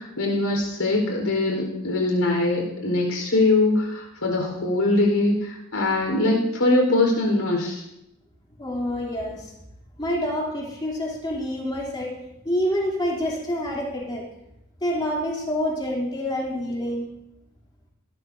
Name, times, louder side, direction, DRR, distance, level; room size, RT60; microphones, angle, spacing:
voice 1, 0.0-7.8, left 2 dB, 80° left, 0 dB, 4.6 m, -22 dB
voice 2, 8.6-9.5 10.0-12.1 12.4-14.2 14.8-17.1, equal, 20° left, -4 dB, 3.3 m, -27 dB
18.5 x 13.0 x 2.8 m, 0.86 s
head